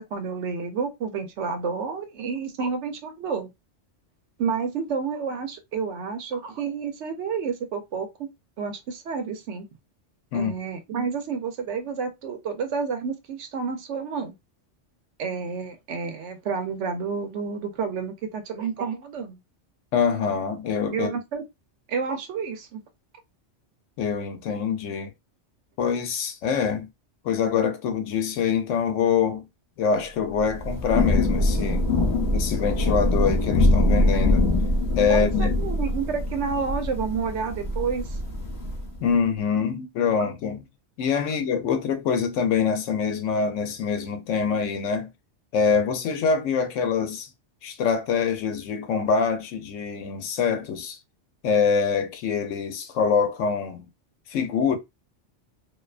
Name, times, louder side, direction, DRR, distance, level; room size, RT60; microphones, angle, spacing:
voice 1, 0.0-3.5 4.4-8.3 8.6-9.7 10.3-14.3 15.2-19.4 20.9-21.4 21.9-22.8 35.1-38.2, right 5 dB, 75° right, 0.9 m, -30 dB
voice 2, 19.9-21.1 24.0-25.1 25.8-26.9 27.2-29.4 29.8-31.9 32.3-34.5 34.9-35.6 39.0-40.6 41.0-45.1 45.5-47.3 47.6-51.0 51.4-53.9 54.3-54.8, left 6 dB, 85° left, 1.0 m, -25 dB
Thunder / Rain, 30.4-39.0, left 2 dB, 35° left, 0.8 m, -23 dB
2.5 x 2.2 x 2.3 m
omnidirectional pair, 1.2 m